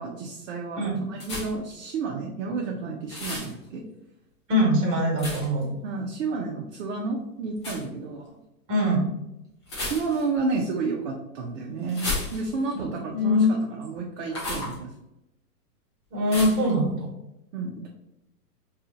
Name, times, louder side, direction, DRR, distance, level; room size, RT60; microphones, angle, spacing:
voice 1, 0.0-3.8 5.8-8.3 9.8-14.9 17.5-17.9, right 4 dB, 50° right, 0 dB, 0.6 m, -31 dB
sound 1, 1.2-1.7 3.1-3.5 5.2-5.6 7.6-7.8 9.6-10.4 11.9-12.7 14.3-14.8 16.3-16.7, left 2 dB, 20° left, 0.4 m, -33 dB
voice 2, 4.5-5.7 8.7-9.1 12.7-12.8 13.1-13.5 16.1-17.1, left 1 dB, 35° right, -1 dB, 1.3 m, -22 dB
2.7 x 2.4 x 3.7 m, 0.88 s
hypercardioid pair, 145°, 48 cm